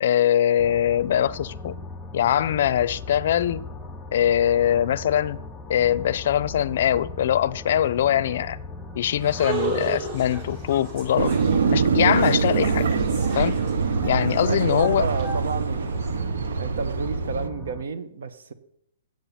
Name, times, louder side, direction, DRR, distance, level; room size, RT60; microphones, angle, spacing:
voice 1, 0.0-1.8 2.1-3.6 4.1-5.4 5.7-8.6 9.0-11.3 11.7-12.9 13.3-13.6 14.0-15.1, left 10 dB, 55° left, 0.5 m, -22 dB
sound 1, 0.6-17.8, left 3 dB, 5° left, 0.6 m, -38 dB
sound 2, 9.2-16.1, right 4 dB, 35° right, 2.3 m, -35 dB
sound 3, 11.2-17.5, right 5 dB, 90° right, 0.7 m, -24 dB
voice 2, 14.5-15.9 16.6-18.5, right 4 dB, 70° right, 1.1 m, -31 dB
8.9 x 7.9 x 5.6 m
hypercardioid pair, 165°, 0 cm